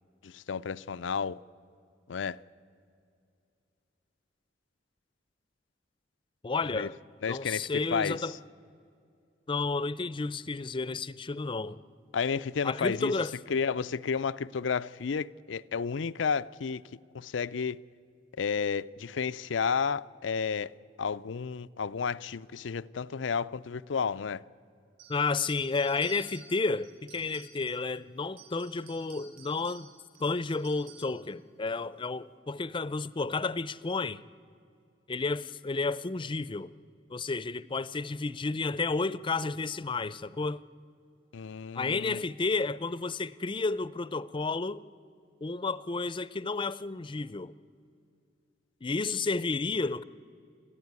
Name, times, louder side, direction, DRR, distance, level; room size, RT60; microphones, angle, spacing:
voice 1, 0.2-1.4 2.1-2.4 6.7-6.9 7.2-8.4 12.1-13.1 13.5-16.8 17.1-17.8 18.4-20.7 21.0-24.4 41.3-42.2, left 6 dB, 90° left, 0.5 m, -32 dB
voice 2, 6.4-7.0 7.3-8.4 9.5-11.8 12.6-13.3 25.1-29.9 30.2-34.2 35.1-36.7 37.1-40.6 41.7-44.8 45.4-47.5 48.8-50.0, left 3 dB, 25° left, 0.5 m, -31 dB
sound 1, 25.0-27.9 28.2-31.2, right 5 dB, 55° right, 6.7 m, -53 dB
29.0 x 13.5 x 9.6 m
head